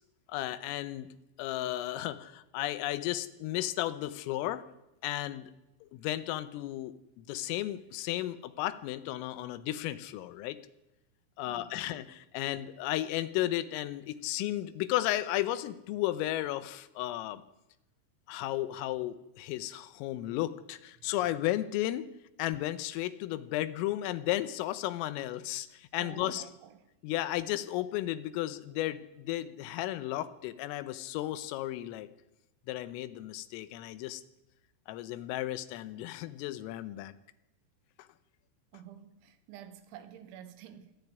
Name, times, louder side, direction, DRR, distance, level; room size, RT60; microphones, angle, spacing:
voice 1, 0.3-1.1 1.4-4.6 5.0-5.5 5.8-10.6 11.4-17.4 18.3-22.1 22.4-26.4 27.0-32.1 32.7-34.2 34.9-37.1, left 14 dB, 90° left, 3.6 m, -34 dB
voice 2, 11.4-12.1 21.0-21.1 26.0-26.9 38.7-40.9, right 10 dB, 75° right, 3.6 m, -50 dB
25.5 x 10.5 x 9.5 m
omnidirectional pair, 5.8 m